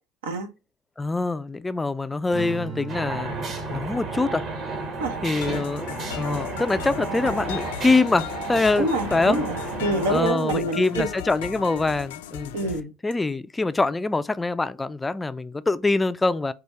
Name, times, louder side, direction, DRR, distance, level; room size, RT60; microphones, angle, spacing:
voice 1, 1.0-3.3 3.7-4.5 5.2-9.4 10.1-12.5 13.0-16.5, left 3 dB, 15° left, 0.3 m, -24 dB
Strum, 2.3-8.7, right 4 dB, 30° right, 0.8 m, -40 dB
sound 1, 2.9-10.3, right 3 dB, 45° right, 1.3 m, -32 dB
sound 2, 5.4-12.8, left 12 dB, 80° left, 0.4 m, -36 dB
voice 2, 8.8-11.1 12.5-12.9, right 2 dB, 80° right, 0.9 m, -26 dB
4.8 x 2.4 x 4.1 m
hypercardioid pair, 80°, 0 cm